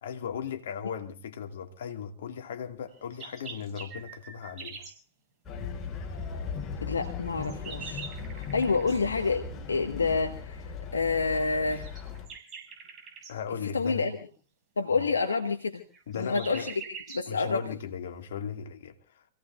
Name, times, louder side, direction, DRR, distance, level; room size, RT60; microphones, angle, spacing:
voice 1, 0.0-4.9 8.6-8.7 13.3-14.1 15.0-15.1 16.1-16.7 17.3-19.3, left 7 dB, 70° left, 2.0 m, -37 dB
sound 1, 2.9-5.0 7.0-9.0 11.7-13.3 15.7-17.3, right 6 dB, 30° right, 6.5 m, -44 dB
sound 2, 5.5-12.3, left 5 dB, 25° left, 6.2 m, -38 dB
voice 2, 6.8-8.0 8.3-11.9 13.7-14.2 14.8-15.8 16.1-16.7 17.1-17.7, left 4 dB, 90° left, 1.3 m, -28 dB
29.0 x 17.0 x 2.4 m
hypercardioid pair, 105°, 0 cm